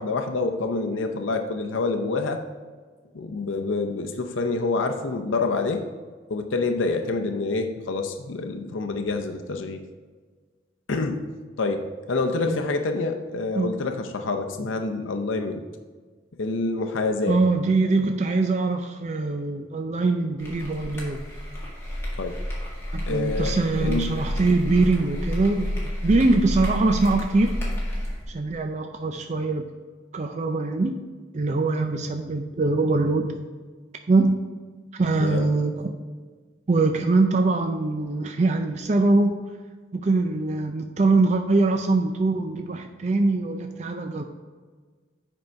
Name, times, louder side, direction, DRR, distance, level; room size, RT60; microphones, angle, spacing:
voice 1, 0.0-2.4 3.1-5.8 6.3-9.8 10.9-11.2 11.6-15.6 16.4-17.4 22.2-22.4 23.1-24.1 35.2-35.5, left 3 dB, 85° left, 5 dB, 0.6 m, -27 dB
voice 2, 17.3-21.2 22.9-27.5 28.3-29.7 30.1-31.0 31.3-33.4 34.1-34.4 34.9-35.7 36.7-39.3 39.9-44.2, right 3 dB, 35° right, 5 dB, 0.4 m, -23 dB
sound 1, 20.4-28.2, equal, 15° left, 1.7 m, -30 dB
7.8 x 5.4 x 4.5 m, 1.5 s
head